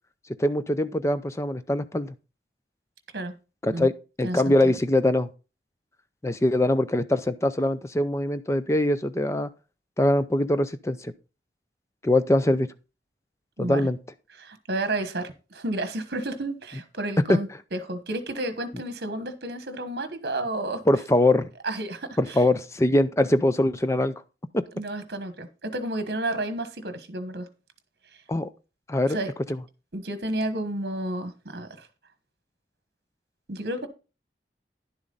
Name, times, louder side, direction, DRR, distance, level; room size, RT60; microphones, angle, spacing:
voice 1, 0.4-2.1 3.6-3.9 4.2-5.3 6.2-9.5 10.0-11.1 12.0-12.7 13.6-14.0 17.3-17.4 20.9-21.5 22.2-24.1 24.5-24.6 28.3-28.5 28.9-29.2, left 1 dB, 15° left, 0.5 m, -22 dB
voice 2, 4.2-4.7 13.6-13.9 14.3-20.8 21.6-22.4 24.7-27.5 29.1-29.3 29.9-31.9 33.5-33.9, right 1 dB, 60° right, 1.3 m, -31 dB
10.5 x 7.3 x 3.9 m
head